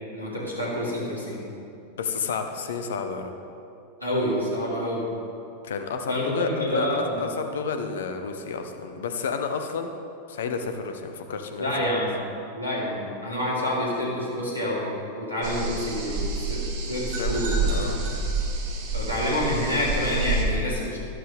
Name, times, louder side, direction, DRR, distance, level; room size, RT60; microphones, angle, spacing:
voice 1, 0.1-1.5 4.0-5.1 6.1-7.3 11.6-12.2 12.5-17.5 18.9-21.0, left 1 dB, 90° right, -6 dB, 3.1 m, -28 dB
voice 2, 2.0-3.3 5.6-9.9 10.3-11.7 17.2-18.0, left 5 dB, 60° left, 6 dB, 1.0 m, -31 dB
sound 1, 15.4-20.4, right 3 dB, 50° right, 1.9 m, -28 dB
12.5 x 12.5 x 3.4 m, 2.6 s
figure-of-eight pair, 90°, 0 cm